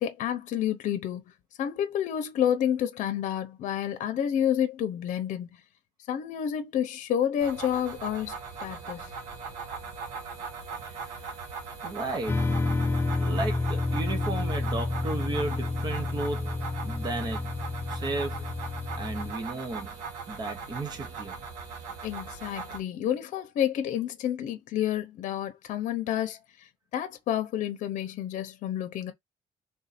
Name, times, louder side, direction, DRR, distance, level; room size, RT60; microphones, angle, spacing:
voice 1, 0.0-1.2 1.6-5.5 6.1-8.3 8.6-9.1 22.0-26.7 26.9-29.1, left 10 dB, 70° left, 0.7 m, -29 dB
sound 1, 7.4-22.8, right 5 dB, 75° right, 1.4 m, -39 dB
voice 2, 10.8-11.4 11.8-12.5 13.2-17.5 17.9-18.5 18.9-19.9 20.3-21.4, right 2 dB, 30° right, 0.9 m, -34 dB
sound 2, 12.3-19.3, left 3 dB, 15° left, 0.4 m, -30 dB
3.6 x 2.6 x 4.1 m
cardioid pair, 145°, 13 cm